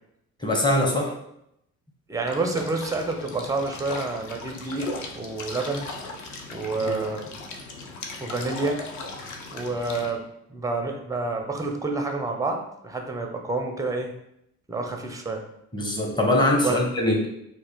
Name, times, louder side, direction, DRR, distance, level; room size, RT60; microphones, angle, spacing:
voice 1, 0.4-1.2 6.8-7.0 15.7-17.3, left 1 dB, 10° left, 0 dB, 0.8 m, -22 dB
voice 2, 2.1-5.9 6.5-7.3 8.2-8.8 9.5-10.3 10.5-14.1 14.7-15.4 16.6-16.8, right 3 dB, 10° right, 3 dB, 0.5 m, -28 dB
sound 1, 2.3-10.1, left 3 dB, 45° left, 0.7 m, -38 dB
3.3 x 2.5 x 3.5 m, 0.78 s
figure-of-eight pair, 45°, 41 cm